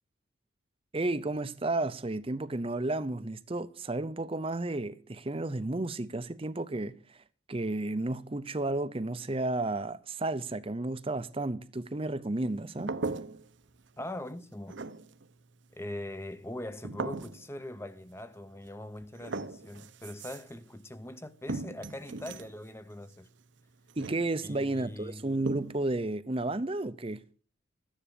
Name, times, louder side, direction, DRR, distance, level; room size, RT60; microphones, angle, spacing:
voice 1, 0.9-7.2 7.5-12.9 24.0-27.2, right 2 dB, 30° right, 0.6 m, -32 dB
sound 1, 12.8-13.7 14.0-14.4 14.7-15.3 16.8-17.5 18.7-18.8 19.0-20.6 21.5-22.6 23.9-24.6 25.4-25.9, right 3 dB, 65° right, 0.8 m, -38 dB
voice 2, 14.0-14.8 15.7-23.3 24.4-25.3, left 1 dB, 15° left, 0.7 m, -42 dB
13.5 x 10.0 x 6.8 m
head